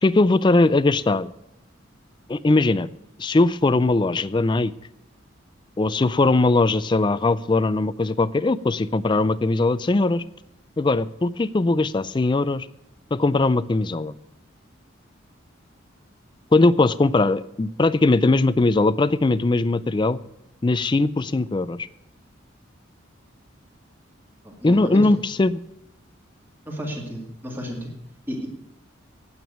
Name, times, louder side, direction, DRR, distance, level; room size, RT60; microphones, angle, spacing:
voice 1, 0.0-1.3 2.3-2.9 3.2-4.7 5.8-10.2 10.8-12.7 13.1-14.1 16.5-20.2 20.6-21.9 24.6-25.6, left 2 dB, 25° left, 16 dB, 0.3 m, -20 dB
voice 2, 24.4-25.1 26.7-27.9 28.3-28.5, equal, 10° right, -1 dB, 2.1 m, -32 dB
9.2 x 8.9 x 9.2 m, 0.84 s
head